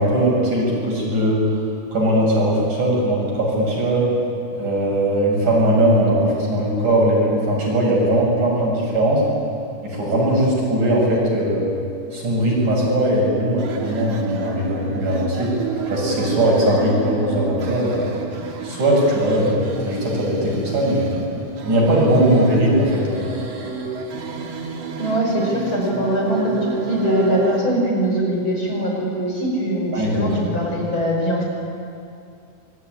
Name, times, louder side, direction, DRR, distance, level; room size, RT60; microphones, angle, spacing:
voice 1, 0.0-1.6 1.9-4.2 4.6-9.2 9.8-11.7 12.1-15.5 15.9-18.1 18.6-21.2 21.7-23.2 29.9-30.4, right 1 dB, 70° right, -3 dB, 9.0 m, -19 dB
sound 1, 13.6-27.6, right 4 dB, 55° right, 3.4 m, -30 dB
voice 2, 25.0-31.5, right 1 dB, 40° left, -1 dB, 6.1 m, -22 dB
25.0 x 21.5 x 9.9 m, 2.5 s
omnidirectional pair, 3.6 m